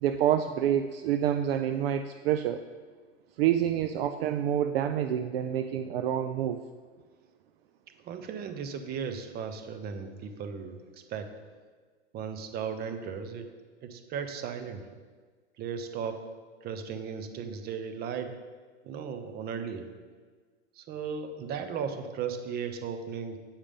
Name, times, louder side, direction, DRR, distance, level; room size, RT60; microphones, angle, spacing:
voice 1, 0.0-2.6 3.4-6.6, right 10 dB, 55° right, 8 dB, 0.5 m, -27 dB
voice 2, 8.0-11.3 12.1-13.5 13.8-14.9 15.6-16.2 16.6-18.4 18.8-19.9 20.7-23.4, right 6 dB, 25° right, 8 dB, 0.9 m, -36 dB
9.0 x 5.0 x 5.5 m, 1.5 s
hypercardioid pair, 115°, 36 cm